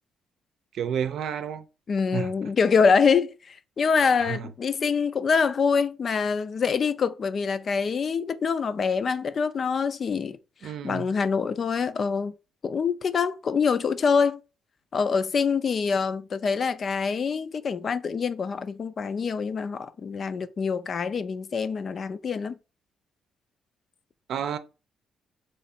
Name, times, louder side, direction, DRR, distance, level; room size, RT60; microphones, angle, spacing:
voice 1, 0.7-1.7 2.1-2.3 4.2-4.5 10.6-11.1 24.3-24.6, right 8 dB, 70° right, 0.6 m, -30 dB
voice 2, 1.9-10.4 10.6-12.3 12.6-14.4 14.9-22.6, left 5 dB, 50° left, 0.4 m, -25 dB
3.6 x 3.1 x 4.2 m
cardioid pair, 90°, 0 cm